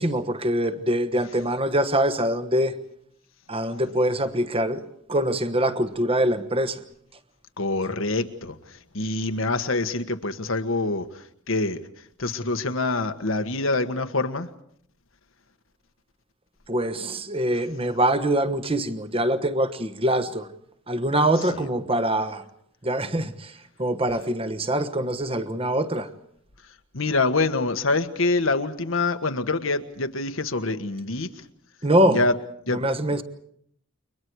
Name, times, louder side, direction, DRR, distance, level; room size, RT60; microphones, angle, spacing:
voice 1, 0.0-2.7 3.5-6.8 16.7-20.5 20.9-22.4 22.8-23.5 23.8-26.1 31.8-32.2 32.8-33.2, right 1 dB, 30° right, 1.3 m, -24 dB
voice 2, 7.6-11.8 12.2-14.5 21.5-21.7 26.9-31.3 32.1-32.3 32.7-32.8, left 3 dB, 80° left, 1.5 m, -25 dB
29.5 x 23.5 x 4.8 m
head